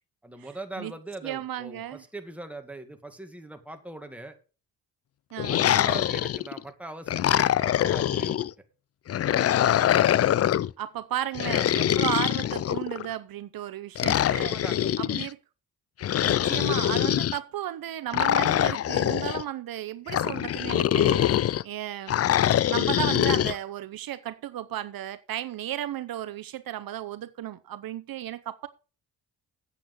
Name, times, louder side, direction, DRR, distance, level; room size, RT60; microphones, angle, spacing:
voice 1, 0.2-4.4 5.5-8.5 14.4-15.3, right 2 dB, 5° right, 2.0 m, -41 dB
voice 2, 1.2-2.0 5.3-5.6 10.4-14.6 15.0-15.4 16.2-22.2 22.6-28.7, right 12 dB, 65° right, 0.7 m, -34 dB
sound 1, 5.4-6.6 7.1-8.5 9.1-10.7 11.3-13.1 14.0-15.3 16.0-17.4 18.1-19.4 20.1-21.6 22.1-23.5, left 11 dB, 40° left, 0.4 m, -24 dB
8.5 x 8.2 x 5.4 m
cardioid pair, 85°, 37 cm